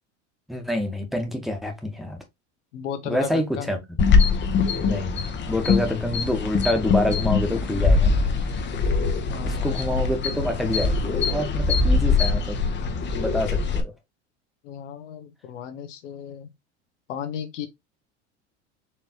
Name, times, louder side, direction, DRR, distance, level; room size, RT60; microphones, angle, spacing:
voice 1, 0.5-2.2 3.0-3.8 4.8-8.2 9.5-12.6 13.1-13.9, left 1 dB, ahead, 1.3 m, -27 dB
voice 2, 2.7-3.7 9.3-9.8 14.6-16.5 17.1-17.7, left 8 dB, 85° left, 1.1 m, -34 dB
sound 1, 4.0-13.8, left 4 dB, 30° left, 0.9 m, -22 dB
4.6 x 3.1 x 2.9 m
supercardioid pair, 100°, 36 cm